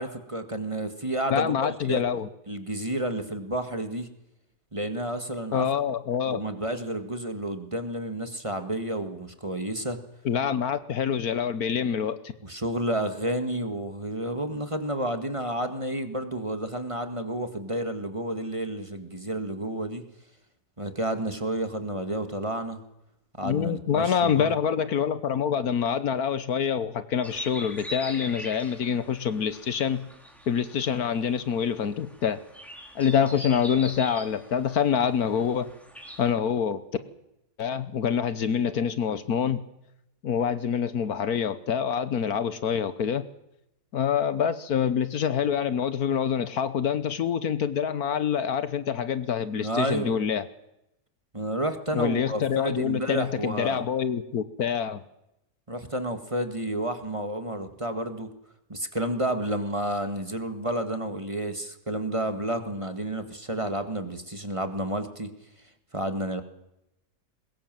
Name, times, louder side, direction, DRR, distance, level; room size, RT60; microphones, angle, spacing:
voice 1, 0.0-2.0 2.5-4.1 4.7-5.7 6.2-10.0 12.4-20.0 20.8-22.8 23.4-24.5 49.6-50.2 51.3-53.8 55.7-58.3 58.7-65.3 65.9-66.4, right 1 dB, 20° right, 8 dB, 1.8 m, -30 dB
voice 2, 1.3-2.3 5.5-6.4 10.2-12.3 23.4-30.1 30.5-32.4 32.9-35.7 36.2-36.8 37.6-39.6 40.2-43.3 43.9-50.4 51.9-55.0, left 7 dB, 70° left, 13 dB, 1.5 m, -26 dB
sound 1, 27.2-36.3, equal, ahead, 3.5 m, -43 dB
22.0 x 20.0 x 7.6 m, 0.86 s
omnidirectional pair, 1.7 m